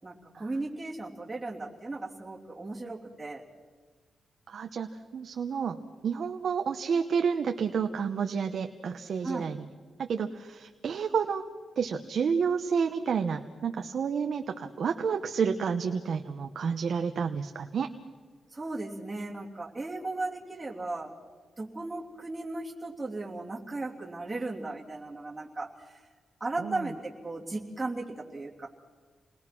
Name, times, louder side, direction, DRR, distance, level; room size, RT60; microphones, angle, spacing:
voice 1, 0.0-3.4 9.2-9.5 18.5-21.1 21.6-26.0 26.4-28.7, right 2 dB, 10° right, -4 dB, 3.2 m, -36 dB
voice 2, 4.5-9.6 10.0-11.4 11.8-17.9 26.6-26.8, right 6 dB, 55° right, 5 dB, 1.0 m, -30 dB
29.0 x 20.5 x 6.1 m, 1.5 s
wide cardioid pair, 175°, 0 cm